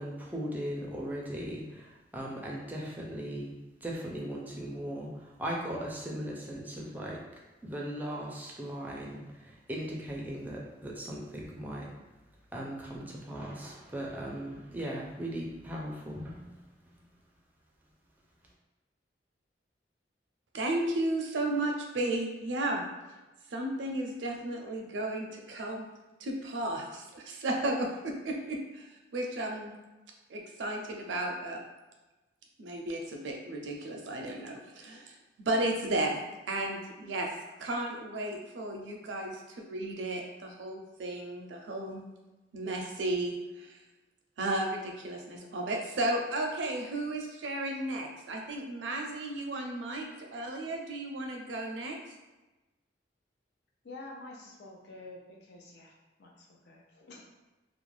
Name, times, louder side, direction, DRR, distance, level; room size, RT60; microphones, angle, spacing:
voice 1, 0.0-3.5 3.8-7.2 7.6-11.9 12.5-16.6 16.9-17.0, equal, 10° right, -3 dB, 0.4 m, -38 dB
voice 2, 20.5-22.8 23.5-25.9 26.2-28.8 29.1-29.7 30.3-31.6 32.6-35.1 35.5-37.3 37.6-42.0 42.5-43.7 44.4-52.0, right 1 dB, 85° right, 2 dB, 0.5 m, -34 dB
voice 3, 53.8-57.2, left 2 dB, 65° left, -1 dB, 0.5 m, -48 dB
2.4 x 2.1 x 3.2 m, 1.1 s
head